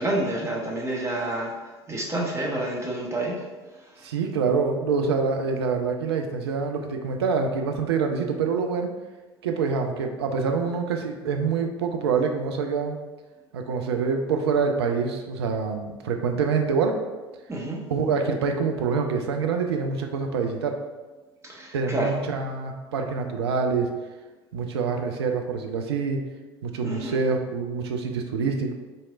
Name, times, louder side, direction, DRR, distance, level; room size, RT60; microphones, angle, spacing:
voice 1, 0.0-1.5 1.9-3.4 17.5-17.8 21.5-22.2 26.8-27.2, right 1 dB, 20° right, -2 dB, 0.9 m, -28 dB
voice 2, 4.0-8.9 9.4-13.0 13.5-17.0 17.9-20.8 21.7-23.9 24.5-26.2 26.6-28.7, right 5 dB, 70° right, 4 dB, 0.4 m, -26 dB
4.0 x 3.1 x 2.4 m, 1.2 s
figure-of-eight pair, 60°, 14 cm